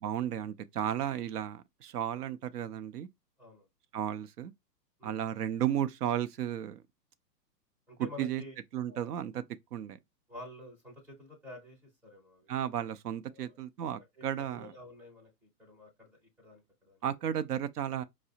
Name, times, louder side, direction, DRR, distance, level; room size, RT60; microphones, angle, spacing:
voice 1, 0.0-3.1 3.9-4.5 5.0-6.8 8.2-8.4 8.7-9.4 9.7-10.0 12.5-14.7 17.0-18.0, right 10 dB, 65° right, 0.6 m, -34 dB
voice 2, 7.9-8.6 8.9-9.1 10.3-12.5 13.3-13.6 14.2-17.0, left 2 dB, 5° right, 0.5 m, -50 dB
4.8 x 2.0 x 2.7 m
hypercardioid pair, 145°, 50 cm